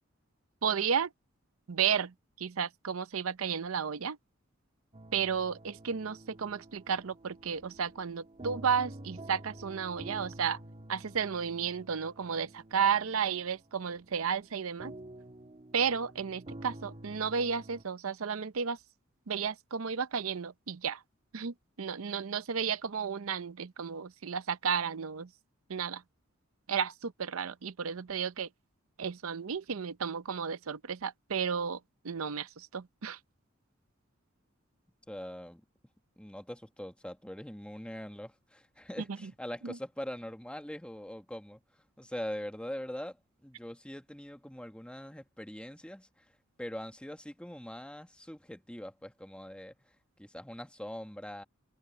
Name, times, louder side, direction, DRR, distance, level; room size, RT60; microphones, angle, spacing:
voice 1, 0.6-1.1 1.7-4.2 5.1-10.6 10.9-14.9 15.7-18.8 19.3-21.0 21.3-25.3 25.7-26.0 26.7-28.5 29.0-31.8 32.0-33.2 39.2-39.3 39.6-39.7, right 7 dB, 85° right, 0.7 m, -33 dB
sound 1, 4.9-17.8, right 1 dB, 30° right, 1.7 m, -49 dB
voice 2, 35.1-35.6 36.2-41.6 42.0-46.2 46.6-49.7 50.2-51.4, equal, 5° left, 1.5 m, -42 dB
head